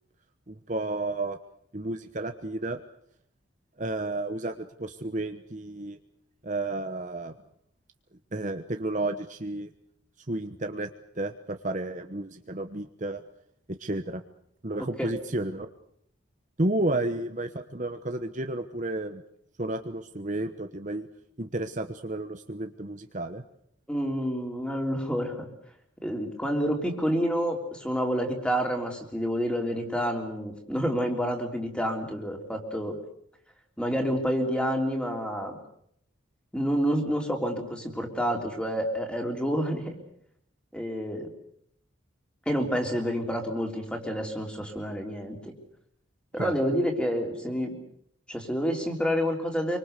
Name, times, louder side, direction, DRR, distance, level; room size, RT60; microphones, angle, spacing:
voice 1, 0.5-1.4 1.7-2.8 3.8-6.0 6.4-7.3 8.3-9.7 10.2-10.9 11.1-13.2 13.7-14.2 14.6-15.7 16.6-19.2 19.6-21.1 21.4-23.4 46.4-46.5, right 2 dB, 35° right, 7 dB, 1.1 m, -32 dB
voice 2, 23.9-25.5 26.0-33.0 33.8-35.6 36.5-40.0 40.7-41.3 42.5-45.5 46.3-47.8 48.3-49.8, equal, 5° left, 2 dB, 3.5 m, -28 dB
26.0 x 24.5 x 6.8 m, 0.71 s
head